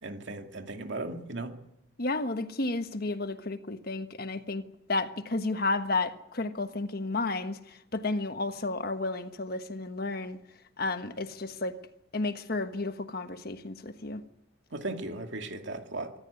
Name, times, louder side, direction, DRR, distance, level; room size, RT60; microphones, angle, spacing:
voice 1, 0.0-1.6 14.7-16.1, right 2 dB, 65° right, 2.5 m, -37 dB
voice 2, 2.0-4.6 4.9-10.4 10.8-11.8 12.1-14.2, left 2 dB, 50° left, 1.3 m, -32 dB
25.0 x 14.0 x 9.7 m
head